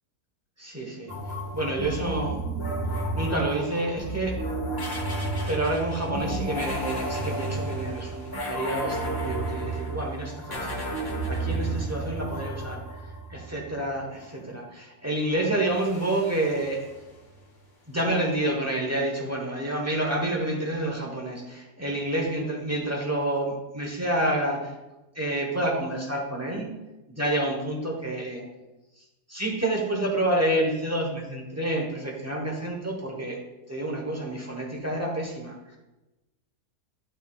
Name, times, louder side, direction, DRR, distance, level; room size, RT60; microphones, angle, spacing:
voice 1, 0.6-1.1 1.5-2.4 3.1-4.4 5.5-12.8 13.3-16.8 17.9-24.7 25.1-26.7 27.1-28.4 29.3-33.4 33.7-35.8, right 1 dB, 10° right, -1 dB, 0.9 m, -28 dB
sound 1, 1.1-13.7 15.7-17.3, right 2 dB, 15° left, 0.9 m, -32 dB
9.4 x 5.9 x 2.3 m, 1.0 s
omnidirectional pair, 1.6 m